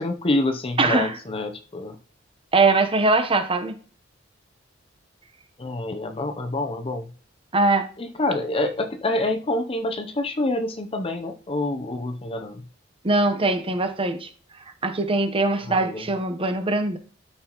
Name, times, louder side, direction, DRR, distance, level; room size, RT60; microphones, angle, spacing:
voice 1, 0.0-2.0 5.6-7.1 8.0-12.6 15.7-16.0, left 2 dB, 30° left, 6 dB, 0.7 m, -27 dB
voice 2, 0.8-1.2 2.5-3.8 7.5-7.9 13.0-14.3 14.8-17.0, right 3 dB, 30° right, 8 dB, 1.0 m, -21 dB
12.5 x 5.4 x 3.0 m, 0.43 s
head